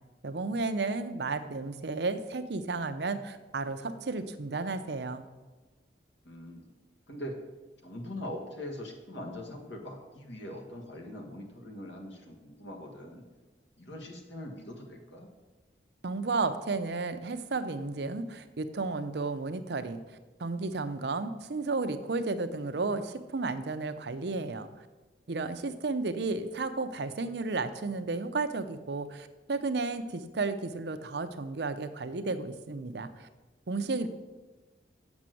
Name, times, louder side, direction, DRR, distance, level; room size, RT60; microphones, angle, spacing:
voice 1, 0.2-5.3 16.0-20.0 20.4-24.7 25.3-33.3 33.7-34.1, right 3 dB, 70° right, 9 dB, 0.6 m, -33 dB
voice 2, 6.2-6.7 7.1-7.4 7.8-13.2 13.8-15.3, left 1 dB, 85° left, 2 dB, 1.6 m, -42 dB
7.2 x 6.1 x 7.6 m, 1.2 s
head